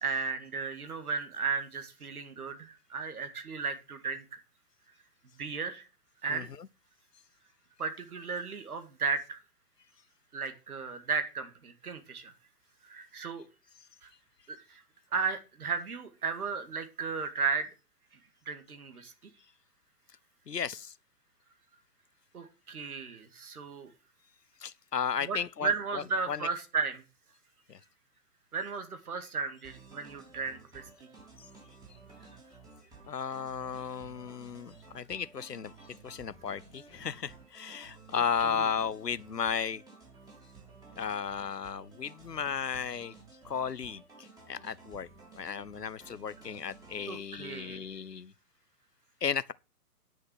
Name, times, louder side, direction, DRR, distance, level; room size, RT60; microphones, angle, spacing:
voice 1, 0.0-4.2 5.4-5.9 6.2-6.5 7.8-9.4 10.3-12.3 12.8-13.4 14.0-14.1 14.5-14.8 15.1-17.7 18.5-19.3 22.3-23.9 25.2-27.0 28.5-31.1 32.2-32.3 38.4-38.7 47.1-47.8, right 5 dB, 65° right, 2.3 m, -35 dB
voice 2, 6.3-6.7 20.5-20.9 24.6-26.4 27.7-27.8 31.4-31.5 33.1-35.7 36.0-39.8 41.0-43.1 43.4-45.1 45.3-48.3 49.2-49.5, left 7 dB, 90° left, 0.7 m, -34 dB
sound 1, 29.6-47.1, right 4 dB, 10° right, 3.7 m, -54 dB
10.0 x 6.4 x 6.2 m
figure-of-eight pair, 125°, 47 cm